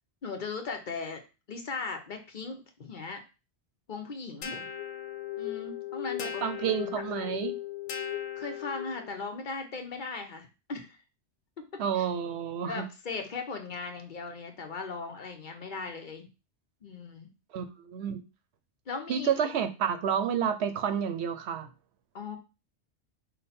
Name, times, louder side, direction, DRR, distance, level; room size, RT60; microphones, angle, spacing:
voice 1, 0.2-1.2 1.5-3.2 3.9-4.7 5.4-6.9 7.2-7.4 8.4-11.0 11.6-11.7 11.9-12.1 12.6-16.2 16.8-17.3 18.9-19.3 22.1-22.4, left 4 dB, 50° left, 4 dB, 0.9 m, -38 dB
sound 1, 4.4-9.2, left 11 dB, 90° left, 0.9 m, -37 dB
voice 2, 6.2-7.5 11.8-12.8 17.5-18.2 19.1-21.7, right 8 dB, 70° right, 9 dB, 0.9 m, -30 dB
5.3 x 2.2 x 4.2 m, 0.30 s
omnidirectional pair, 1.2 m